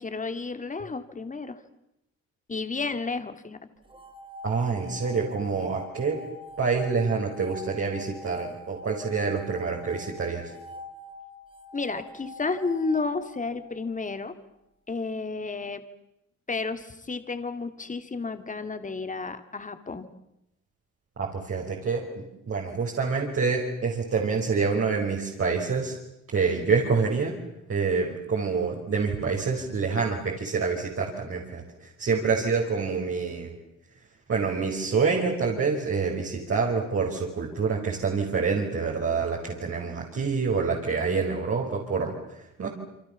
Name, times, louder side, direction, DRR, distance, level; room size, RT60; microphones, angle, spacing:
voice 1, 0.0-1.6 2.5-3.6 11.7-14.3 14.9-15.8 16.5-20.1, left 4 dB, 25° left, 9 dB, 2.5 m, -31 dB
sound 1, 3.8-14.0, left 2 dB, 20° right, 5.4 m, -44 dB
voice 2, 4.4-6.2 6.6-10.5 21.2-26.0 26.3-27.4 27.7-33.6 34.3-42.7, right 5 dB, 45° right, -2 dB, 5.4 m, -27 dB
28.5 x 25.0 x 7.2 m, 0.85 s
cardioid pair, 90°, 30 cm